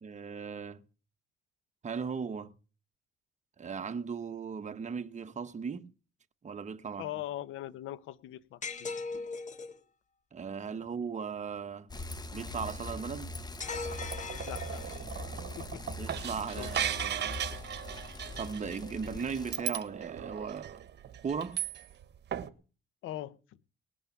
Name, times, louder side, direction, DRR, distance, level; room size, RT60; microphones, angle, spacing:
voice 1, 0.0-0.8 1.8-2.5 3.6-5.9 6.4-7.1 10.3-11.9 12.3-13.4 16.0-17.4 18.4-20.7 21.2-21.6, right 6 dB, 35° right, 1.3 m, -37 dB
voice 2, 7.0-9.0 14.4-14.8 15.6-15.8 16.6-16.7 23.0-23.4, left 13 dB, 90° left, 1.0 m, -41 dB
sound 1, 8.6-9.8 13.6-15.2, left 4 dB, 40° left, 1.8 m, -39 dB
Bicycle, 11.9-19.6, left 2 dB, 20° left, 1.5 m, -42 dB
sound 2, 13.7-22.0 22.3-22.5, right 10 dB, 60° right, 1.4 m, -38 dB
19.5 x 8.9 x 7.2 m
cardioid pair, 90°, 20 cm